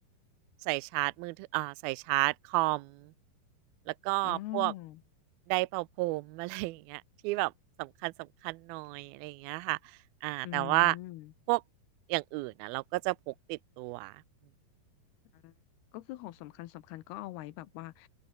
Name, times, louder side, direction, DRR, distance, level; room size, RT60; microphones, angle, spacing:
voice 1, 0.7-2.9 4.1-4.7 5.5-7.5 7.8-8.1 8.4-9.8 10.2-11.0 11.5-11.6 12.1-14.1, right 25 dB, 80° right, 2.4 m, -31 dB
voice 2, 4.2-5.0 10.4-11.3 15.4-15.5 15.9-18.1, left 16 dB, 80° left, 2.9 m, -42 dB
open air
omnidirectional pair, 4.6 m